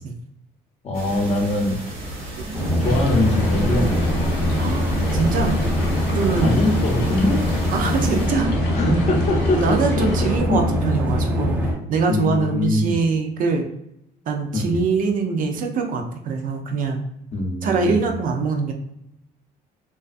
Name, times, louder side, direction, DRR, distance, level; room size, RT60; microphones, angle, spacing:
voice 1, 0.8-1.8 2.8-4.2 6.4-7.4 8.7-10.6 12.1-12.9 14.5-14.8 17.3-18.1, left 2 dB, 40° left, 2 dB, 0.6 m, -23 dB
sound 1, 0.9-8.3, right 2 dB, 80° right, 1.0 m, -34 dB
sound 2, 2.5-11.7, left 1 dB, 10° right, 0.6 m, -23 dB
sound 3, 2.8-10.4, left 1 dB, 80° left, 0.7 m, -31 dB
voice 2, 4.6-5.6 6.1-6.6 7.7-8.5 9.6-13.7 14.3-17.0 17.6-18.7, right 4 dB, 55° right, 3 dB, 0.4 m, -23 dB
2.4 x 2.3 x 2.4 m, 0.79 s
cardioid pair, 110°, 17 cm